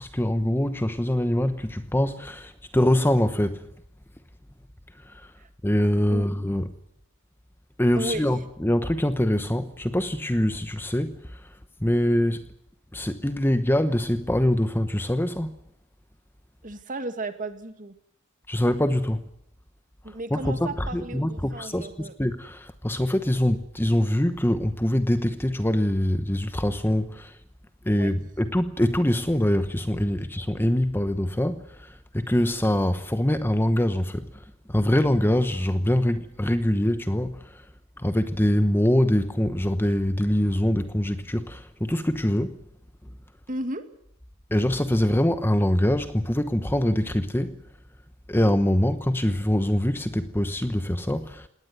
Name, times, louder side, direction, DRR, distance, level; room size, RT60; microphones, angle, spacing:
voice 1, 0.0-3.6 5.1-5.2 5.6-6.7 7.8-11.2 11.8-12.5 12.9-15.5 18.5-19.2 20.3-27.4 27.8-34.4 34.7-37.6 38.0-42.6 44.5-47.6 48.3-51.5, left 1 dB, 10° left, 1.0 m, -24 dB
voice 2, 8.0-8.3 16.6-17.9 20.0-22.1 27.9-28.1 43.5-43.8, right 2 dB, 40° right, 2.1 m, -34 dB
20.0 x 18.5 x 9.4 m
head